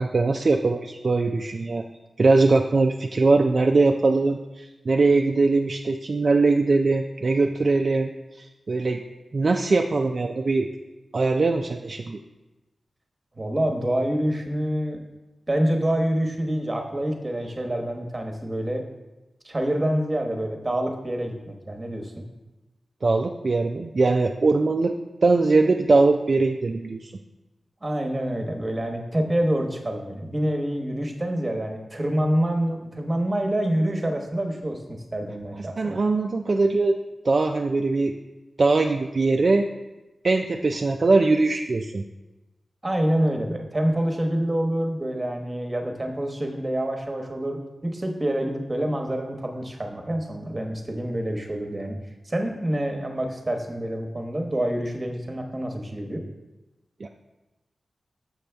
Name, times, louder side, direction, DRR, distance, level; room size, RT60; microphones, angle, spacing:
voice 1, 0.0-1.8 2.2-8.1 8.4-9.0 9.3-10.7 11.1-12.2 23.0-24.9 25.2-27.1 35.8-37.0 37.2-38.1 38.6-39.7 40.2-42.0 57.0-57.1, right 3 dB, 55° right, 3 dB, 0.3 m, -21 dB
voice 2, 13.4-15.0 15.5-18.8 19.4-22.2 27.8-35.9 42.8-52.0 52.2-56.2, right 1 dB, 30° right, 3 dB, 1.0 m, -27 dB
6.7 x 6.2 x 3.4 m, 1.1 s
wide cardioid pair, 70°, 0 cm